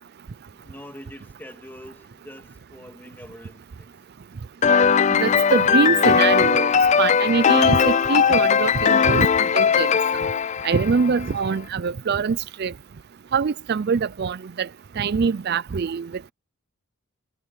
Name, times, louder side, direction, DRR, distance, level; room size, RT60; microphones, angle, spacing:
voice 1, 0.5-4.0, equal, 10° left, 2.8 m, -45 dB
sound 1, 4.6-11.3, left 6 dB, 35° left, 0.3 m, -19 dB
voice 2, 5.1-6.7 7.0-9.3 9.5-9.9 10.6-12.7 13.3-14.7 15.0-16.3, right 5 dB, 50° right, 0.4 m, -23 dB
head